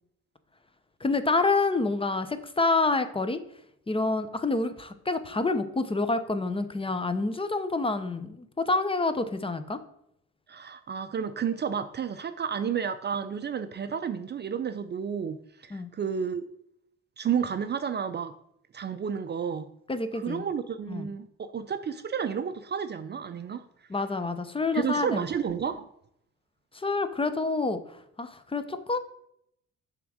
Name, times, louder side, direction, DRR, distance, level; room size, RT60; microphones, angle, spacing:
voice 1, 1.0-3.4 3.9-9.8 15.7-15.9 19.9-20.4 20.9-21.1 23.9-25.2 26.7-27.8 28.2-29.0, left 3 dB, 20° left, 11 dB, 0.7 m, -27 dB
voice 2, 10.5-16.5 17.2-18.3 18.7-19.7 20.1-23.6 24.7-25.8, right 7 dB, 35° right, 10 dB, 0.4 m, -31 dB
6.9 x 3.6 x 6.3 m, 0.74 s
cardioid pair, 90°, 30 cm